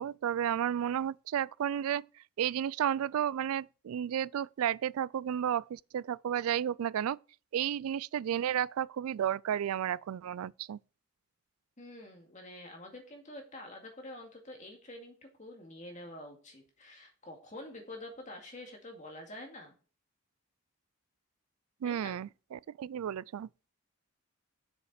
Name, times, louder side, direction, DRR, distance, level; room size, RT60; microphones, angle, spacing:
voice 1, 0.0-2.0 2.4-7.2 7.5-10.8 21.8-23.5, right 9 dB, 75° right, 0.3 m, -32 dB
voice 2, 11.8-19.7 21.8-22.2, left 1 dB, 35° left, 2.2 m, -47 dB
7.1 x 7.0 x 5.0 m
head